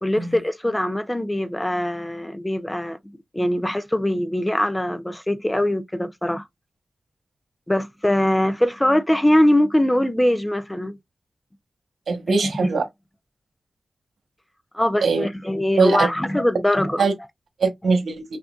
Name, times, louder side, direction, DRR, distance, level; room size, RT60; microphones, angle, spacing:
voice 1, 0.0-6.5 7.7-11.0 12.4-12.5 14.7-17.0, left 1 dB, 10° left, 0.5 m, -22 dB
voice 2, 12.1-12.8 15.0-15.3 15.8-16.1 17.0-17.1 17.6-18.2, right 4 dB, 90° right, 1.1 m, -20 dB
5.7 x 2.6 x 2.5 m
wide cardioid pair, 105°, 0 cm